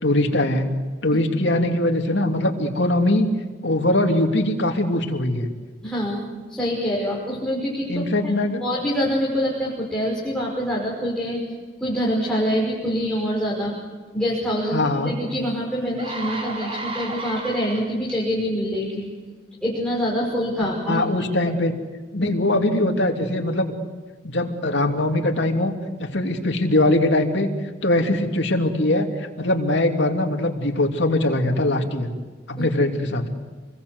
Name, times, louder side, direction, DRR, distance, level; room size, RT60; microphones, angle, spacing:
voice 1, 0.0-0.7 1.0-3.3 3.6-5.5 7.9-8.6 14.7-15.1 20.9-21.7 22.1-23.7 24.2-25.7 26.0-27.5 27.8-32.1 32.5-33.2, left 1 dB, 70° left, 3 dB, 2.9 m, -21 dB
voice 2, 5.8-8.3 8.6-11.4 11.8-13.8 14.1-19.1 19.6-21.0 22.2-22.3 32.6-32.7, equal, 5° left, -5 dB, 5.5 m, -25 dB
sound 1, 15.2-15.3 15.8-18.1 18.8-19.0, right 2 dB, 30° right, 4.9 m, -33 dB
28.0 x 21.5 x 8.0 m, 1.3 s
head